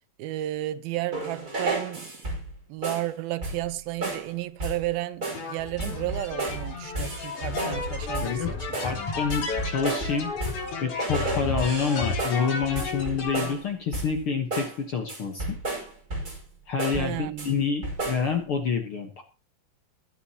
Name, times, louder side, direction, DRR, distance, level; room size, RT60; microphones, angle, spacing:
voice 1, 0.2-2.1 2.7-8.8 16.9-17.5, right 15 dB, 85° right, 2.7 m, -33 dB
sound 1, 1.1-2.5 2.8-3.1 3.4-3.7 4.0-4.3 4.6-4.9 5.2-5.5 5.8-6.7 7.0-7.8 8.1-8.4 8.7-10.7 11.0-13.6 13.9-14.2 14.5-14.8 15.1-16.5 16.8-17.5 17.8-18.3, right 2 dB, 25° right, 5.6 m, -32 dB
sound 2, 5.3-13.5, left 4 dB, 80° left, 4.7 m, -32 dB
voice 2, 8.8-10.3 10.8-15.6 16.7-19.2, left 5 dB, 55° left, 1.6 m, -28 dB
23.5 x 8.7 x 2.9 m
omnidirectional pair, 4.2 m